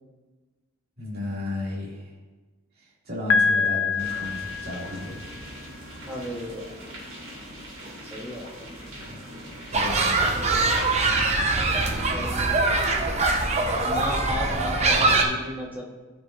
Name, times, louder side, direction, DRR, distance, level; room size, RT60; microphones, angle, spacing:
voice 1, 1.0-2.1 2.8-5.2 9.0-9.2 9.7-10.6, left 1 dB, 50° right, -7 dB, 2.5 m, -34 dB
Piano, 3.3-5.2, left 5 dB, 70° left, 0.5 m, -25 dB
sound 1, 4.0-12.0, equal, 75° right, 2.6 m, -42 dB
voice 2, 6.0-6.9 8.1-8.7 11.4-13.1 13.8-15.9, left 1 dB, 10° right, -3 dB, 1.3 m, -35 dB
sound 2, 9.7-15.2, right 3 dB, 35° right, 0.8 m, -23 dB
13.5 x 5.3 x 2.6 m, 1.3 s
head